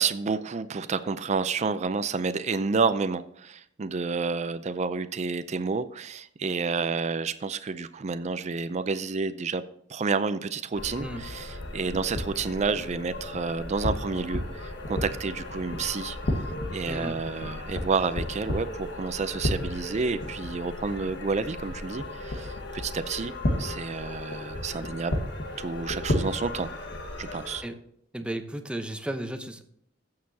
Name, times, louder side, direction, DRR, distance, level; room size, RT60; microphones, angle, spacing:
voice 1, 0.0-9.6 9.9-16.2 16.7-23.3 23.6-25.2 25.6-26.7 27.2-27.6, right 4 dB, 40° right, 12 dB, 0.5 m, -30 dB
sound 1, 10.7-27.6, left 1 dB, 65° left, 1.5 m, -33 dB
voice 2, 16.9-17.2 27.6-27.7 28.1-29.6, right 1 dB, 5° right, 6 dB, 0.8 m, -34 dB
15.5 x 6.6 x 2.8 m, 0.69 s
head